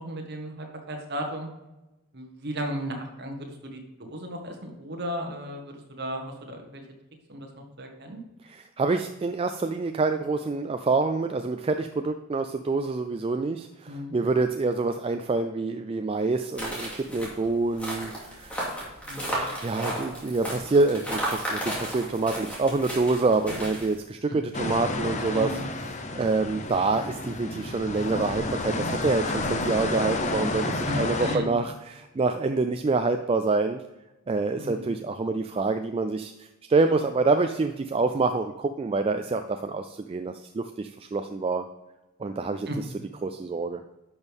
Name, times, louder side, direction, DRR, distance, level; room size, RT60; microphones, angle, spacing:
voice 1, 0.0-1.5 2.1-6.8 7.3-8.2 13.9-14.1 19.1-19.4 24.3-24.4 25.3-25.6 30.8-31.5 34.6-34.9 42.7-42.8, equal, 50° right, 3 dB, 1.6 m, -35 dB
voice 2, 8.5-18.7 19.3-25.6 26.1-33.8 34.3-41.7 42.2-42.7 43.2-43.8, right 3 dB, 25° right, 7 dB, 0.3 m, -26 dB
sound 1, 16.5-23.9, equal, 5° left, 2.6 m, -33 dB
sound 2, 24.5-31.4, left 2 dB, 35° left, 0.8 m, -30 dB
11.0 x 6.2 x 3.5 m, 1.0 s
head